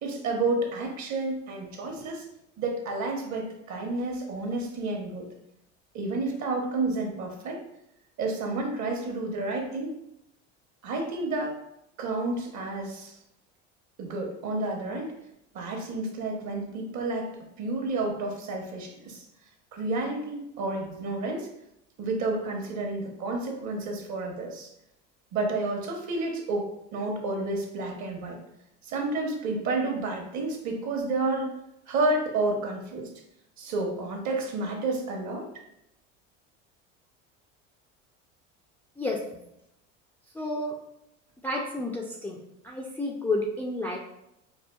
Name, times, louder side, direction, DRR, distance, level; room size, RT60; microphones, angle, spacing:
voice 1, 0.0-2.3 2.6-5.3 5.9-7.6 8.2-9.9 10.8-11.5 12.0-13.1 14.0-15.1 15.5-17.3 17.6-19.2 19.7-21.5 22.0-24.7 25.3-28.4 28.9-31.5 31.9-33.1 33.6-35.5, right 2 dB, 50° right, 2 dB, 1.0 m, -30 dB
voice 2, 40.4-40.7 41.4-42.4 42.6-44.0, left 2 dB, 5° left, -3 dB, 0.4 m, -30 dB
4.5 x 2.3 x 2.3 m, 0.82 s
hypercardioid pair, 85°, 36 cm